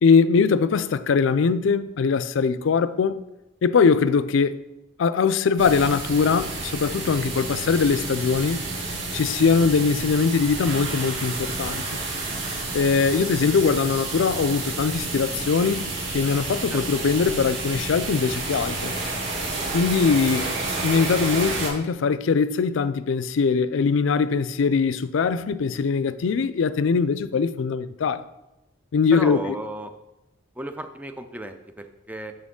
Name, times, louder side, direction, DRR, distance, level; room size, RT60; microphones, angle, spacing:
voice 1, 0.0-3.2 3.6-4.6 5.0-8.6 9.1-11.8 12.7-18.9 19.7-20.5 20.8-28.2 28.9-29.4, left 5 dB, 70° left, 0.4 m, -21 dB
sound 1, 5.6-21.7, right 3 dB, 85° right, 2.3 m, -30 dB
voice 2, 29.1-29.9 30.6-32.3, right 1 dB, 10° right, 0.5 m, -34 dB
7.5 x 6.3 x 3.7 m
head